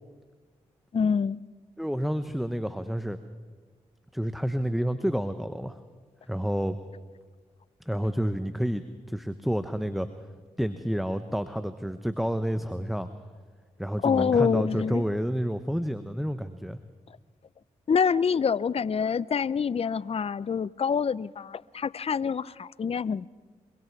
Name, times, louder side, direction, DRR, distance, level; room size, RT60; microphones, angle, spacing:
voice 1, 0.9-1.4 14.0-15.0 17.9-23.3, left 6 dB, 40° left, 0.6 m, -26 dB
voice 2, 1.8-3.2 4.1-5.8 6.3-6.8 7.9-10.1 10.6-13.1 13.8-16.8, equal, ahead, 1.1 m, -29 dB
24.0 x 23.0 x 4.8 m
hypercardioid pair, 40°, 16 cm